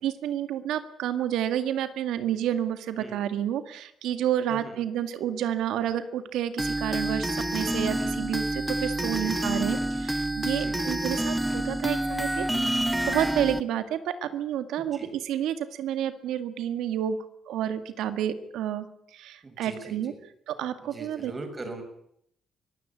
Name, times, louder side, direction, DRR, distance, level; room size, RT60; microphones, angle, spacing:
voice 1, 0.0-12.7 13.1-17.2 17.5-18.9 19.1-20.1 20.5-21.3, right 10 dB, 85° right, 11 dB, 1.9 m, -30 dB
sound 1, 6.6-13.6, right 1 dB, 10° right, 1.1 m, -28 dB
voice 2, 9.0-9.5 10.5-10.8 14.8-15.1 19.4-20.2 20.8-21.8, right 3 dB, 30° right, 5 dB, 6.6 m, -41 dB
24.0 x 15.5 x 8.5 m, 0.73 s
cardioid pair, 90°, 0 cm